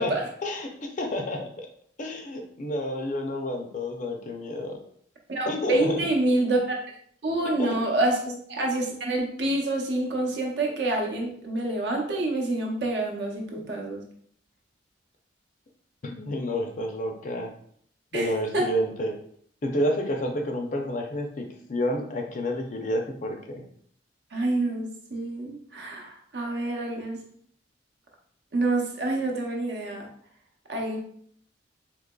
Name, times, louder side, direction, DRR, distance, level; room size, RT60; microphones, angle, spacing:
voice 1, 0.0-1.7 2.0-4.8 5.5-6.0 7.6-7.8 8.3-8.4 16.0-17.5 18.1-19.2 19.6-23.7, left 1 dB, 40° left, 3 dB, 0.5 m, -30 dB
voice 2, 5.3-6.6 7.2-8.2 8.5-14.0 18.1-18.7 24.3-27.2 28.5-30.1 30.7-31.0, right 2 dB, 60° right, 0 dB, 0.7 m, -27 dB
3.8 x 2.9 x 2.3 m, 0.62 s
head